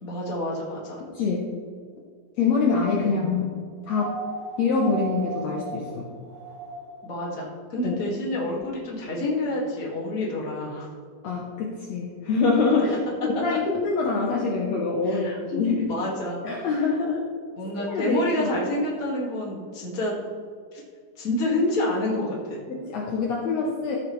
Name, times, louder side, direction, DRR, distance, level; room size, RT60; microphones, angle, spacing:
voice 1, 0.0-1.0 3.0-3.2 7.0-10.9 15.1-16.7 17.6-20.1 20.7-20.8 21.2-22.6, left 1 dB, 35° left, -4 dB, 1.6 m, -28 dB
voice 2, 1.1-1.5 2.4-3.6 3.9-4.2 4.6-6.1 7.8-8.0 11.2-15.9 16.4-17.3 17.9-18.6 22.7-24.0, left 4 dB, 80° left, -2 dB, 1.5 m, -25 dB
sound 1, 3.8-7.1 8.5-8.6, right 4 dB, 60° right, 1.9 m, -36 dB
14.5 x 6.2 x 3.1 m, 2.1 s
omnidirectional pair, 4.3 m